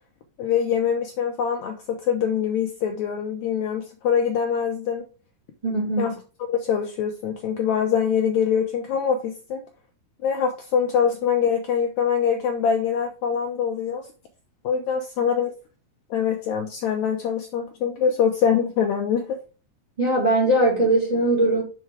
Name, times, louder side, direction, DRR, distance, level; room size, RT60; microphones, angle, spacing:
voice 1, 0.4-5.0 6.0-6.1 6.5-9.6 10.2-14.0 14.6-15.5 16.1-19.2, left 7 dB, 75° left, 1.8 m, -24 dB
voice 2, 5.6-6.1 20.0-21.6, right 1 dB, 15° right, 2.2 m, -20 dB
6.0 x 4.5 x 4.7 m
omnidirectional pair, 3.9 m